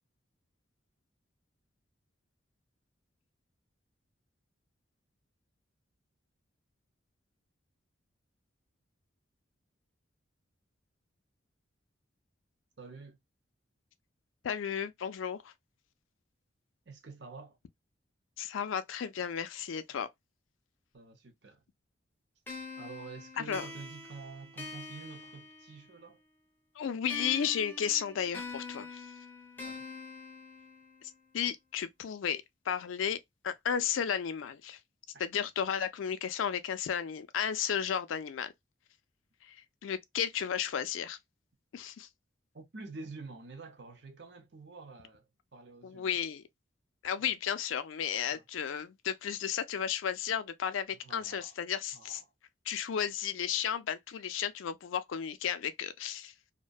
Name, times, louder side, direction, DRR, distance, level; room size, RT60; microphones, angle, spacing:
voice 1, 12.8-13.2 16.9-17.6 20.9-21.6 22.8-26.2 29.6-29.8 35.1-35.2 42.5-46.1 48.3-48.4 51.0-51.6 51.9-52.2, right 4 dB, 60° right, 0.7 m, -48 dB
voice 2, 14.4-15.5 18.4-20.1 23.4-23.7 26.8-29.1 31.3-33.2 33.4-34.8 35.2-38.5 39.5-39.6 39.8-41.2 41.7-42.1 45.8-46.4 47.0-52.2 52.7-56.3, left 8 dB, 90° left, 0.4 m, -33 dB
sound 1, 22.5-26.1 27.1-31.1, left 3 dB, 10° left, 0.6 m, -45 dB
2.5 x 2.2 x 2.3 m
head